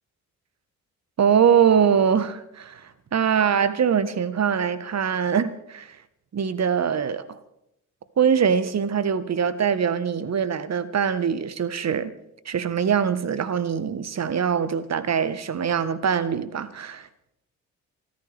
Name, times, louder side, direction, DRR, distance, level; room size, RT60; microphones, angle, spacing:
voice 1, 1.2-6.0 6.3-7.4 8.2-12.1 12.4-17.1, right 7 dB, 40° right, 1.4 m, -23 dB
26.5 x 14.5 x 3.5 m
hypercardioid pair, 45°, 40 cm